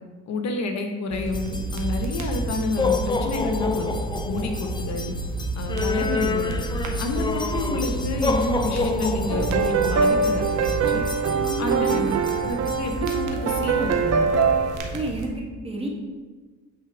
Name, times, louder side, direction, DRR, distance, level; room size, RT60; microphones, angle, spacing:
voice 1, 0.3-3.9 4.3-5.1 5.6-6.7 7.0-11.0 11.6-12.0 12.4-14.3, left 3 dB, 65° left, 4 dB, 0.9 m, -29 dB
sound 1, 1.1-15.3, right 2 dB, 80° right, 1.0 m, -31 dB
sound 2, 1.3-13.2, left 4 dB, 15° left, 0.5 m, -30 dB
sound 3, 9.3-14.8, right 5 dB, 60° right, 0.7 m, -23 dB
voice 2, 11.3-12.2 14.9-15.9, right 2 dB, 20° right, -1 dB, 1.6 m, -30 dB
8.4 x 3.4 x 4.8 m, 1.4 s
cardioid pair, 90°, 30 cm